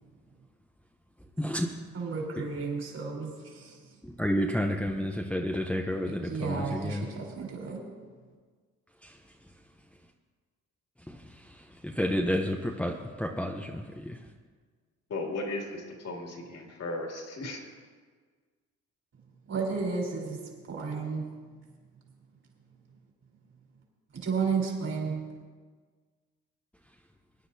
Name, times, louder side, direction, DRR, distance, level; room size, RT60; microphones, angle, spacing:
voice 1, 1.4-1.8 2.4-2.5 4.0-7.1 9.0-9.2 11.1-14.2, equal, 5° left, 0 dB, 0.8 m, -31 dB
voice 2, 1.9-3.8 6.1-7.8 19.5-20.4 20.7-21.3 24.1-25.2, right 5 dB, 55° right, -2 dB, 4.1 m, -32 dB
voice 3, 15.1-17.6, left 2 dB, 55° left, 0 dB, 2.8 m, -36 dB
23.0 x 10.0 x 2.8 m, 1.6 s
cardioid pair, 90°, 30 cm